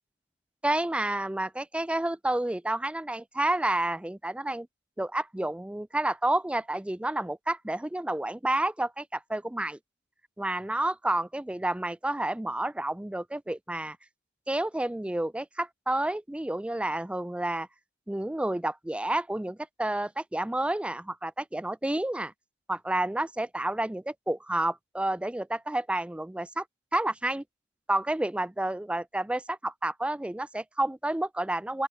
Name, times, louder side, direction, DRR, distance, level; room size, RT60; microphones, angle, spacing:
voice 1, 0.6-4.7 5.0-9.8 10.4-14.0 14.5-17.7 18.1-22.3 22.7-26.6 26.9-27.4 27.9-31.9, right 1 dB, 5° right, 0.4 m, -30 dB
open air
head